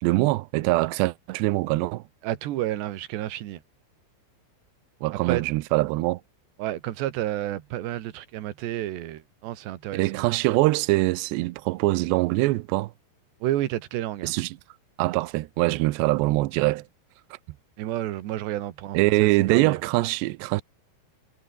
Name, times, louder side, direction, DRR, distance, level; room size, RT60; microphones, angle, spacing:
voice 1, 0.0-2.0 5.0-6.2 9.9-12.9 14.2-14.6 15.0-16.9 18.9-20.6, right 20 dB, 90° right, 2.5 m, -23 dB
voice 2, 2.2-3.6 5.2-5.4 6.6-10.3 13.4-14.3 17.8-19.8, right 13 dB, 65° right, 3.4 m, -30 dB
omnidirectional pair, 5.9 m